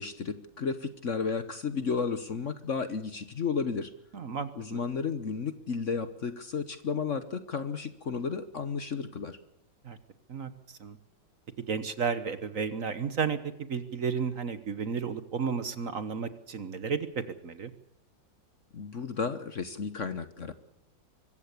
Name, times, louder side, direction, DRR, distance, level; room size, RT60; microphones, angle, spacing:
voice 1, 0.0-3.9 4.5-9.4 18.7-20.5, left 5 dB, 50° left, 12 dB, 1.2 m, -33 dB
voice 2, 4.1-4.8 9.8-10.0 10.3-10.5 10.8-11.0 11.7-13.4 13.7-17.7, right 6 dB, 50° right, 12 dB, 1.4 m, -32 dB
24.5 x 14.5 x 8.4 m, 0.74 s
omnidirectional pair, 2.0 m